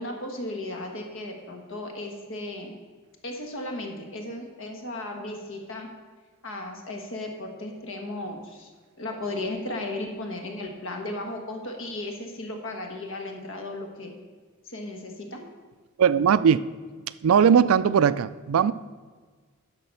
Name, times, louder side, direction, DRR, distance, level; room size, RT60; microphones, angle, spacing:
voice 1, 0.0-2.7 3.2-5.9 6.4-8.7 9.0-14.2 14.6-15.4, left 1 dB, 65° left, 3 dB, 1.5 m, -35 dB
voice 2, 16.0-16.6 17.2-18.7, right 7 dB, 75° right, 16 dB, 0.4 m, -19 dB
10.5 x 6.7 x 5.5 m, 1.5 s
head